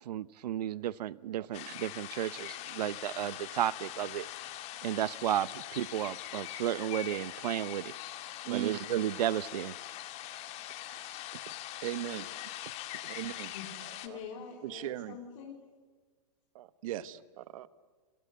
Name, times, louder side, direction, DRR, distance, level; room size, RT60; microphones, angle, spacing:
voice 1, 0.0-4.2 4.8-7.9 8.5-9.7, right 12 dB, 75° right, 19 dB, 0.7 m, -33 dB
sound 1, 1.5-14.1, left 14 dB, 30° left, 2.0 m, -42 dB
voice 2, 11.8-12.3 13.1-13.5 14.1-14.2 14.6-15.2 16.5-17.7, right 14 dB, 55° right, 14 dB, 1.3 m, -38 dB
voice 3, 14.0-15.6, left 7 dB, 50° left, 1 dB, 4.1 m, -45 dB
29.5 x 22.5 x 8.2 m, 1.4 s
hypercardioid pair, 150°, 21 cm